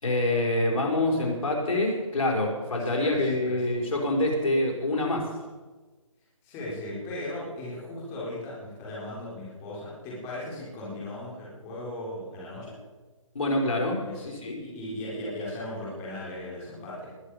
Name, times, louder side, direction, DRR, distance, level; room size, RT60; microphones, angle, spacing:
voice 1, 0.0-5.3 13.3-14.0 14.4-14.6, left 1 dB, 75° left, -1 dB, 5.0 m, -26 dB
voice 2, 2.7-3.6 6.4-12.8 14.0-17.1, left 1 dB, 15° left, -7 dB, 4.5 m, -37 dB
21.0 x 9.6 x 5.0 m, 1.3 s
hypercardioid pair, 165°, 17 cm